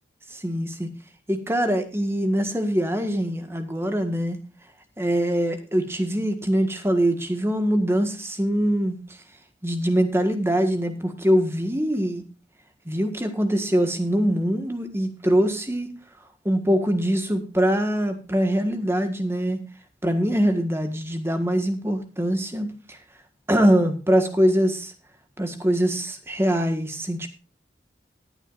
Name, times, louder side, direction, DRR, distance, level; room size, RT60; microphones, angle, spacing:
voice 1, 0.3-0.9 1.3-4.4 5.0-9.0 9.6-12.2 12.8-16.0 16.4-19.6 20.0-23.0 23.5-24.9 25.4-27.3, equal, 15° right, 7 dB, 1.6 m, -23 dB
19.5 x 8.9 x 2.6 m, 0.31 s
head